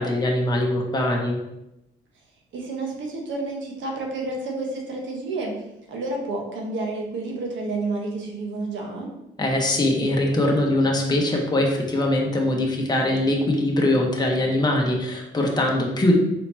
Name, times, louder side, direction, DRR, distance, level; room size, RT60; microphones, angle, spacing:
voice 1, 0.0-1.4 9.4-16.1, left 1 dB, 20° left, -1 dB, 1.0 m, -22 dB
voice 2, 2.5-5.5 5.9-9.1, right 2 dB, 75° right, 0 dB, 1.1 m, -30 dB
4.3 x 4.0 x 2.8 m, 0.91 s
cardioid pair, 90°, 20 cm